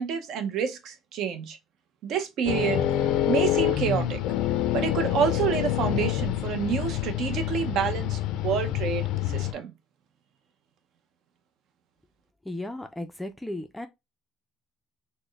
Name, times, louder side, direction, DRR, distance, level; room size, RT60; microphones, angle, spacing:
voice 1, 0.0-1.6 2.0-4.2 4.7-9.7, right 7 dB, 60° right, 0.6 m, -28 dB
sound 1, 2.5-9.5, left 12 dB, 80° left, 0.4 m, -27 dB
voice 2, 12.4-13.9, left 1 dB, 5° left, 0.4 m, -35 dB
4.1 x 2.1 x 3.2 m
cardioid pair, 155°, 0 cm